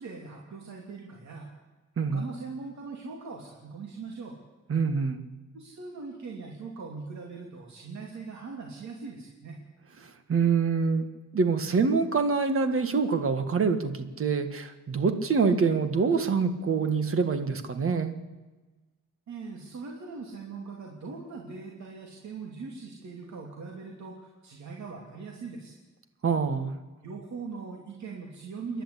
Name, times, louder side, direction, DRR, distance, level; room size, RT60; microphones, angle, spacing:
voice 1, 0.0-1.5 2.0-4.4 5.5-9.6 19.3-25.7 27.0-28.8, right 4 dB, 60° right, 0 dB, 3.0 m, -41 dB
voice 2, 4.7-5.2 10.3-11.1 11.3-18.1 26.2-26.7, right 5 dB, 45° right, 8 dB, 1.8 m, -25 dB
28.0 x 11.5 x 8.5 m, 1.2 s
wide cardioid pair, 170°, 31 cm